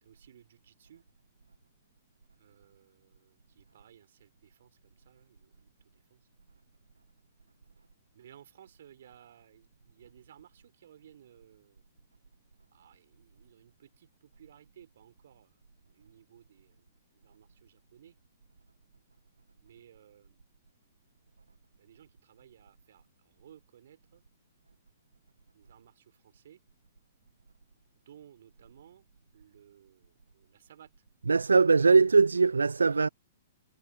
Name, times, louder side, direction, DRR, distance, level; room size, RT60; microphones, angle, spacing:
voice 1, 0.0-1.0 2.4-6.3 8.1-11.8 12.7-15.6 15.9-16.9 17.1-18.2 19.6-20.4 21.8-24.2 25.5-26.6 28.1-29.1 29.3-30.9 32.9-33.1, right 10 dB, 60° right, 3.4 m, -58 dB
voice 2, 31.2-33.1, right 4 dB, 80° right, 0.6 m, -21 dB
figure-of-eight pair, 110°, 0 cm